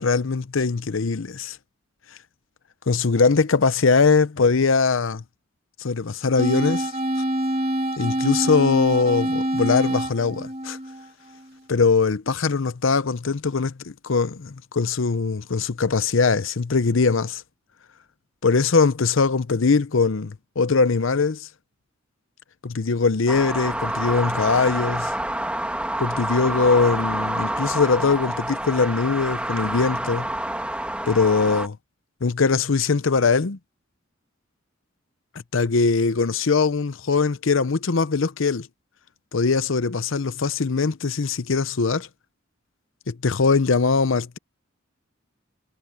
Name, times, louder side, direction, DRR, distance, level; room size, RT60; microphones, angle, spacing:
voice 1, 0.0-1.6 2.9-5.2 5.8-6.9 8.0-10.8 11.7-17.4 18.4-21.5 22.6-25.1 26.0-30.3 31.1-31.8 32.2-33.6 35.5-38.7 39.3-42.1 43.1-44.4, left 4 dB, 70° left, 0.7 m, -21 dB
sound 1, 6.4-11.4, right 1 dB, 30° right, 2.5 m, -26 dB
sound 2, 23.3-31.7, right 1 dB, 5° right, 2.2 m, -28 dB
head